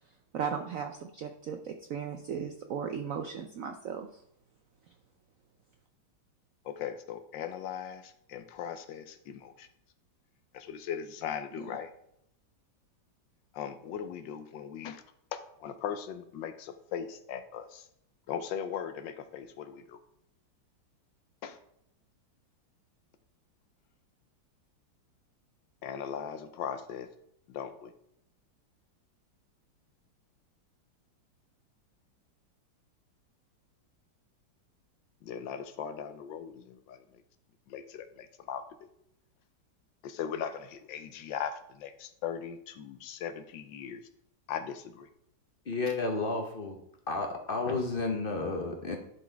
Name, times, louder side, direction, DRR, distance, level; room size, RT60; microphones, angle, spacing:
voice 1, 0.3-4.2, right 7 dB, 75° right, 5 dB, 0.7 m, -36 dB
voice 2, 6.6-9.7 10.5-11.9 13.5-15.0 15.3-17.9 18.3-20.0 21.4-21.6 25.8-27.1 27.5-27.9 35.2-37.2 37.7-38.9 40.0-44.0 44.5-45.1, left 8 dB, 75° left, 9 dB, 1.3 m, -39 dB
voice 3, 45.6-46.8 47.1-49.0, left 3 dB, 45° left, 3 dB, 0.8 m, -31 dB
10.5 x 4.1 x 4.5 m, 0.75 s
omnidirectional pair, 2.1 m